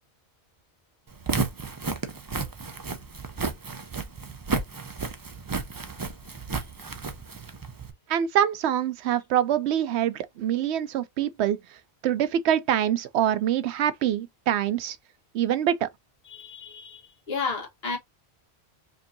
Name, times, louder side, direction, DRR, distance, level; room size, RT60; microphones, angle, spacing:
Walk footsteps, 1.1-7.9, right 4 dB, 30° right, 0.4 m, -32 dB
voice 1, 8.1-11.6 12.0-15.0 15.3-15.9, right 10 dB, 85° right, 0.9 m, -25 dB
voice 2, 16.2-18.0, left 4 dB, 70° left, 1.5 m, -33 dB
5.1 x 2.7 x 2.6 m
omnidirectional pair, 1.1 m